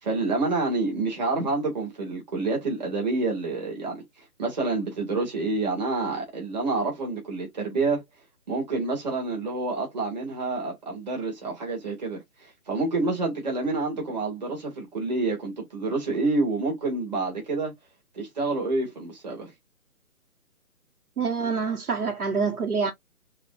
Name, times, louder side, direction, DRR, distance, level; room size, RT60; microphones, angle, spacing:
voice 1, 0.0-8.0 8.5-17.7 18.1-19.5, right 3 dB, 30° right, 2.4 m, -28 dB
voice 2, 21.2-22.9, right 5 dB, 75° right, 1.6 m, -26 dB
6.4 x 2.6 x 2.6 m
hypercardioid pair, 175°, 44 cm